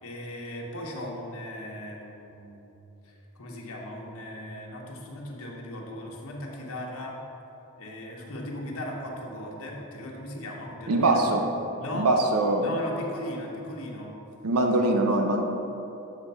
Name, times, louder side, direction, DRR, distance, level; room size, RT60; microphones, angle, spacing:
voice 1, 0.0-2.7 3.0-7.2 7.8-11.3 11.8-12.1 12.6-14.1, left 1 dB, 70° left, -1 dB, 1.1 m, -37 dB
voice 2, 10.9-11.5 11.9-12.7 14.4-15.4, right 2 dB, 80° right, 3 dB, 0.6 m, -23 dB
8.1 x 3.3 x 5.5 m, 3.0 s
head